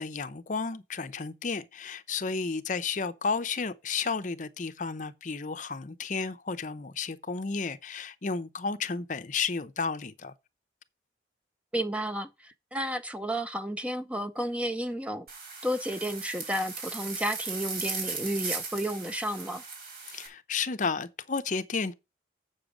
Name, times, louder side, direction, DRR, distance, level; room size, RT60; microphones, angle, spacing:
voice 1, 0.0-10.3 20.1-21.9, left 4 dB, 45° left, 0.7 m, -32 dB
voice 2, 11.7-15.3 15.6-19.6, equal, 5° right, 0.6 m, -32 dB
sound 1, 15.3-20.3, right 4 dB, 55° right, 4.5 m, -37 dB
7.8 x 6.7 x 5.0 m
head